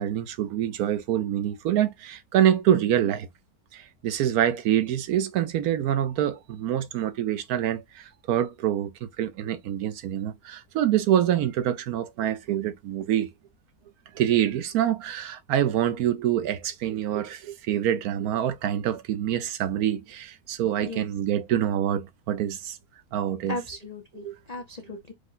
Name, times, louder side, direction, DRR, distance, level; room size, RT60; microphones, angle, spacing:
voice 1, 0.0-3.3 3.7-13.3 14.1-22.8 23.1-23.6 24.2-24.4, right 11 dB, 75° right, 1.1 m, -26 dB
voice 2, 23.5-25.1, left 3 dB, 65° left, 0.4 m, -36 dB
5.0 x 2.1 x 3.7 m
omnidirectional pair, 1.6 m